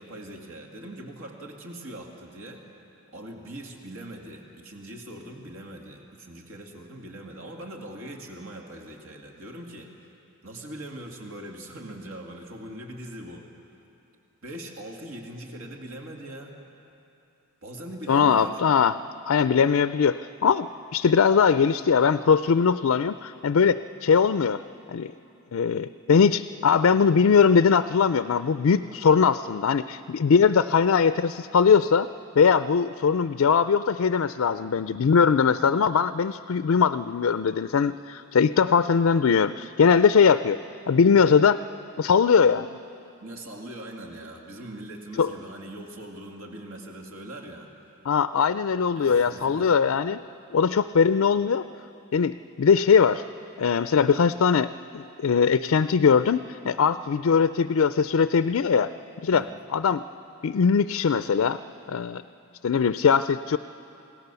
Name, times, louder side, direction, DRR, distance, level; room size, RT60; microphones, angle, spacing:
voice 1, 0.0-2.7 3.1-9.9 10.4-13.5 14.4-16.5 17.6-18.5 43.2-47.7 48.9-49.8 59.3-59.6, right 1 dB, 70° right, 1 dB, 2.3 m, -41 dB
voice 2, 18.1-18.9 19.3-24.6 24.9-25.1 25.5-32.1 32.4-40.6 40.9-41.6 42.0-42.7 45.2-45.3 48.1-50.2 50.5-51.6 52.1-53.2 53.6-58.9 59.2-59.4 59.7-60.0 60.4-61.6 61.9-62.2 62.6-63.6, left 6 dB, 65° left, 12 dB, 0.4 m, -21 dB
28.5 x 17.5 x 6.9 m, 2.9 s
head